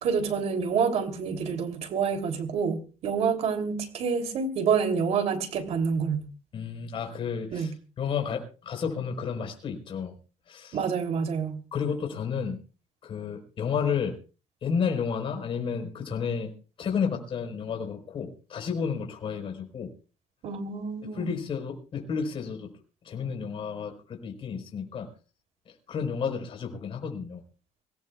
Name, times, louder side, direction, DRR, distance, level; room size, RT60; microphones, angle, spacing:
voice 1, 0.0-6.3 7.5-7.7 10.7-11.6 20.4-21.2, right 6 dB, 60° right, 3.2 m, -27 dB
voice 2, 6.5-10.1 10.5-10.8 11.7-12.6 13.0-14.1 14.6-16.5 16.8-19.9 21.1-22.7 23.0-25.1 25.9-27.4, left 6 dB, 45° left, 4.7 m, -31 dB
25.0 x 17.5 x 2.4 m
cardioid pair, 140°, 12 cm